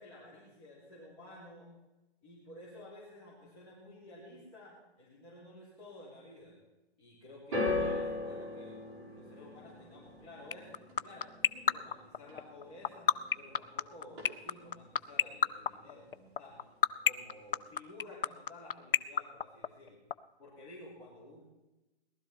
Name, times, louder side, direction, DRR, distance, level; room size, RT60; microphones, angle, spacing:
voice 1, 0.0-1.7 2.2-6.6 7.0-16.7 17.0-20.0 20.4-21.4, left 1 dB, 20° left, -10 dB, 3.8 m, -53 dB
sound 1, 7.5-13.8 14.1-14.7 15.5-15.6, left 3 dB, 25° right, 4.9 m, -39 dB
sound 2, 10.5-20.1, left 9 dB, 55° left, 0.6 m, -26 dB
18.5 x 12.5 x 4.5 m, 1.1 s
hypercardioid pair, 175°, 32 cm